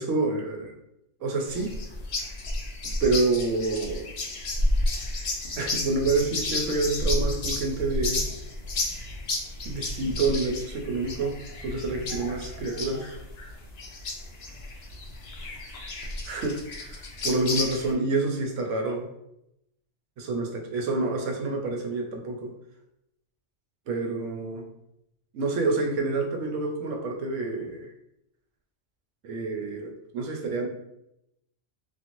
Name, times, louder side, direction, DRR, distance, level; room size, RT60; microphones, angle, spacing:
voice 1, 0.0-0.7 1.2-1.8 3.0-4.1 5.6-8.2 9.6-13.2 16.2-19.1 20.2-22.5 23.9-24.6 25.3-27.9 29.2-30.7, right 3 dB, 75° right, 2 dB, 0.9 m, -28 dB
sound 1, 1.5-17.9, left 2 dB, 85° left, 0.3 m, -32 dB
2.5 x 2.5 x 2.9 m, 0.83 s
omnidirectional pair, 1.3 m